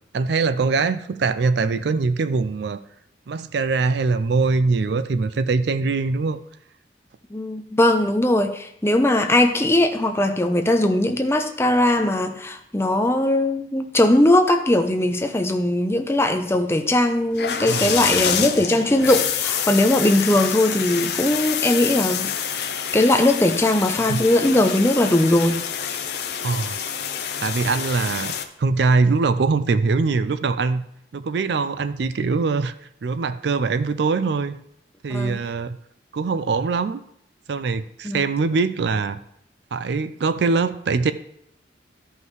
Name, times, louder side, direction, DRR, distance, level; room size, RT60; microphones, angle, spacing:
voice 1, 0.1-2.8 3.3-6.4 17.7-18.5 24.1-24.2 26.4-26.8 27.4-28.3 28.6-30.8 31.1-32.7 33.0-34.6 35.0-35.8 36.1-37.0 37.5-39.2 39.7-41.1, right 4 dB, 65° right, 13 dB, 0.4 m, -22 dB
voice 2, 7.3-22.7 22.9-25.6 35.1-35.4 38.0-38.2, left 1 dB, 15° left, 6 dB, 0.6 m, -20 dB
sound 1, 17.3-28.4, left 8 dB, 60° left, 0.6 m, -27 dB
13.5 x 5.4 x 3.1 m, 0.73 s
head